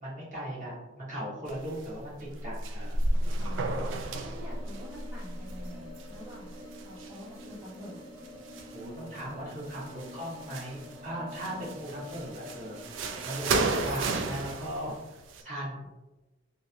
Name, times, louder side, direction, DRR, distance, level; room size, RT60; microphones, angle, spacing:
voice 1, 0.0-3.0 8.7-15.9, equal, 45° right, -8 dB, 1.3 m, -38 dB
sound 1, 1.5-7.7 8.2-9.2 9.5-11.0 11.3-15.4, right 2 dB, 75° right, 0.4 m, -33 dB
voice 2, 3.4-3.9 4.1-8.0 8.3-8.7, equal, 15° right, -10 dB, 1.1 m, -47 dB
sound 2, 4.4-13.8, left 1 dB, 25° left, 0.6 m, -47 dB
3.1 x 2.5 x 2.8 m, 1.1 s
head